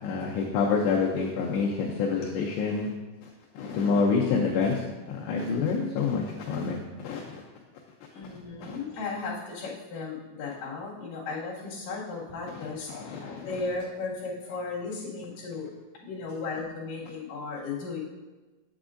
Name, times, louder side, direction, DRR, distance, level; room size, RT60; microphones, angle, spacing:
voice 1, 0.0-2.9 3.2-3.3 3.6-7.4 8.6-8.8 12.9-13.4, left 5 dB, 80° left, -1 dB, 2.7 m, -27 dB
voice 2, 8.1-15.7 16.0-18.0, left 4 dB, 55° left, -7 dB, 3.1 m, -35 dB
7.8 x 7.8 x 2.5 m, 1.2 s
omnidirectional pair, 5.2 m